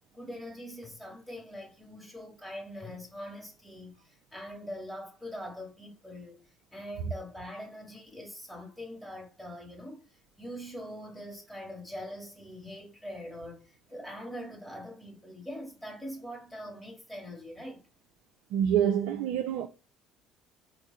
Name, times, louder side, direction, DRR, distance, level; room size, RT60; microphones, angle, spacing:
voice 1, 0.1-6.4 6.7-10.0 10.4-17.9, equal, 5° left, 2.4 m, -43 dB
voice 2, 18.5-19.7, right 9 dB, 70° right, 0.4 m, -26 dB
4.4 x 2.5 x 4.2 m
hypercardioid pair, 60°, 0 cm